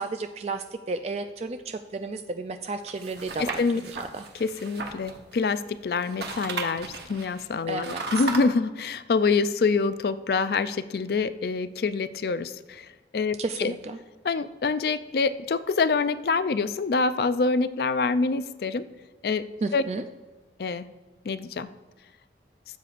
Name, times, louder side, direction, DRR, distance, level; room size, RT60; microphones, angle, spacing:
voice 1, 0.0-4.3 7.7-8.2 13.4-14.0 19.6-20.0, right 3 dB, 35° right, 8 dB, 0.3 m, -33 dB
sound 1, 2.9-5.7 6.0-8.4, right 3 dB, 70° right, 1.1 m, -36 dB
voice 2, 3.4-3.8 4.4-13.7 14.2-18.9 19.2-19.5 19.7-19.8 20.6-20.9 21.3-21.7, left 4 dB, 55° left, 14 dB, 0.4 m, -26 dB
15.0 x 7.5 x 2.5 m, 1.3 s
head